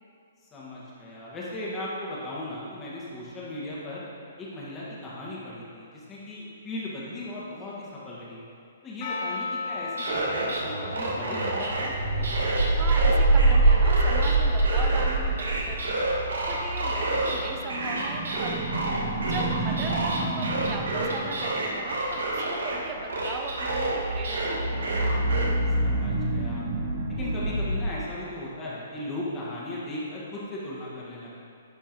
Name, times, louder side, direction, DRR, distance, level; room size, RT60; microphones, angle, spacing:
voice 1, 0.5-4.0 4.4-8.4 8.8-12.4 19.6-19.8 25.8-26.7 27.1-31.4, left 1 dB, 20° left, -7 dB, 1.6 m, -37 dB
Percussion, 9.0-14.0, left 4 dB, 50° left, 1.0 m, -38 dB
sound 1, 9.7-10.6 10.9-11.9 12.2-14.3 14.6-17.4 17.7-22.8 23.1-25.5, right 2 dB, 85° right, 1.3 m, -30 dB
sound 2, 10.1-27.9, right 2 dB, 50° right, 0.9 m, -27 dB
voice 2, 12.8-16.1 16.5-18.9 19.2-25.0, right 4 dB, 25° right, 3 dB, 0.6 m, -38 dB
10.5 x 4.5 x 3.0 m, 2.4 s
hypercardioid pair, 145°, 0 cm